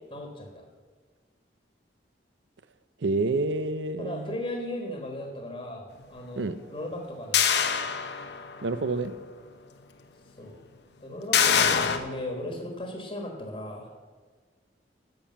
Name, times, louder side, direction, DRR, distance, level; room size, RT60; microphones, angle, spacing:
voice 1, 0.1-0.7 4.0-7.5 10.4-10.6 11.0-13.9, left 1 dB, 30° left, 2 dB, 1.5 m, -37 dB
voice 2, 3.0-4.3 6.3-6.5 8.6-9.1, right 3 dB, 85° right, 14 dB, 0.6 m, -28 dB
sound 1, 7.3-8.6 9.0-9.1 11.3-12.0, left 7 dB, 70° left, 0.8 m, -23 dB
11.0 x 6.7 x 7.5 m, 1.5 s
head